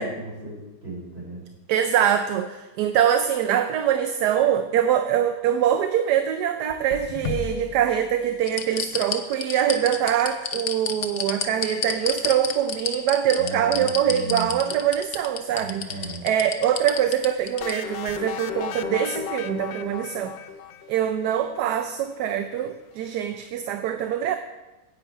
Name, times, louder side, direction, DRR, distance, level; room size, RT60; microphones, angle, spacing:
voice 1, 0.0-1.5 13.4-14.6 15.5-16.2, right 2 dB, 35° right, -5 dB, 4.3 m, -36 dB
voice 2, 1.7-20.3 20.9-24.4, right 10 dB, 75° right, 8 dB, 1.1 m, -24 dB
sound 1, 6.7-8.0 8.5-17.7 18.1-18.2, left 7 dB, 60° left, 1.2 m, -30 dB
sound 2, 17.6-21.4, left 8 dB, 85° left, 1.3 m, -35 dB
9.9 x 8.6 x 4.5 m, 1.1 s
omnidirectional pair, 1.9 m